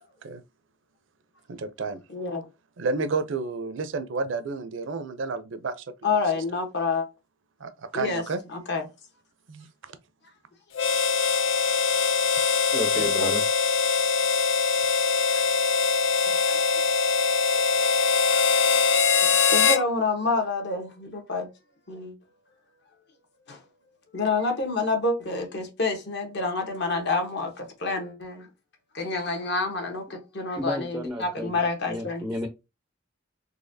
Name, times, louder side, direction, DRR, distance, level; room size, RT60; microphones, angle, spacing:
voice 1, 1.5-2.0 2.8-5.8 6.1-6.2 7.6-8.4 9.5-9.7, right 4 dB, 75° right, 0.5 m, -31 dB
voice 2, 2.1-2.4 6.0-7.1 7.9-8.2 8.5-8.8 13.0-13.3 15.1-16.1 16.5-16.6 17.5-18.6 19.2-21.5 21.9-22.1 23.5-23.6 24.1-28.5 28.9-32.3, left 3 dB, 60° left, 1.0 m, -28 dB
Harmonica, 10.7-19.8, left 5 dB, 80° left, 0.5 m, -22 dB
voice 3, 12.7-13.4 30.6-32.5, equal, 5° right, 0.4 m, -32 dB
4.0 x 2.8 x 2.6 m
head